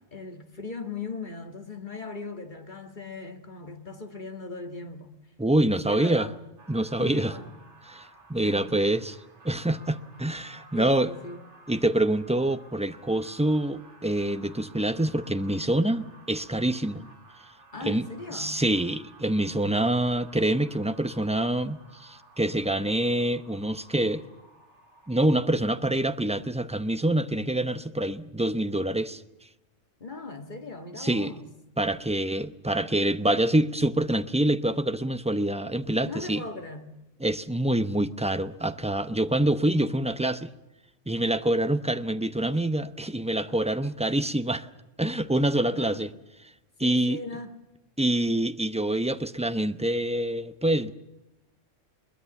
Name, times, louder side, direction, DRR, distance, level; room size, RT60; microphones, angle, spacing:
voice 1, 0.1-5.1 5.6-6.4 7.0-7.6 8.4-8.8 10.7-11.4 17.7-18.6 30.0-31.5 36.0-36.9 45.6-46.1 46.8-47.6, left 3 dB, 40° left, 2.0 m, -39 dB
voice 2, 5.4-6.3 6.7-7.4 7.9-9.2 9.4-11.1 11.7-17.1 17.8-18.1 18.3-24.2 25.1-29.2 31.0-31.3 31.8-36.4 37.2-40.5 41.1-44.7 45.0-46.1 46.8-47.2 48.0-50.9, right 1 dB, 5° right, 0.6 m, -26 dB
sound 1, 6.6-25.4, right 2 dB, 65° right, 2.8 m, -54 dB
22.0 x 21.0 x 7.0 m
omnidirectional pair, 1.3 m